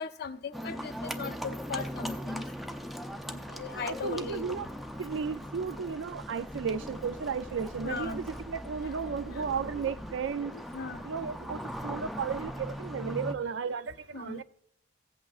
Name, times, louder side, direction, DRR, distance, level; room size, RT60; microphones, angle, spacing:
voice 1, 0.0-2.4 3.3-4.5 7.8-8.2 9.3-9.5 10.5-11.0 14.1-14.4, left 5 dB, 60° left, 0.5 m, -38 dB
Livestock farm animals working animals, 0.5-13.3, equal, ahead, 0.4 m, -40 dB
sound 1, 1.7-12.9, equal, 50° right, 1.7 m, -51 dB
voice 2, 3.7-4.7 5.0-10.5 11.0-14.4, right 6 dB, 75° right, 0.4 m, -34 dB
15.5 x 8.2 x 2.4 m
head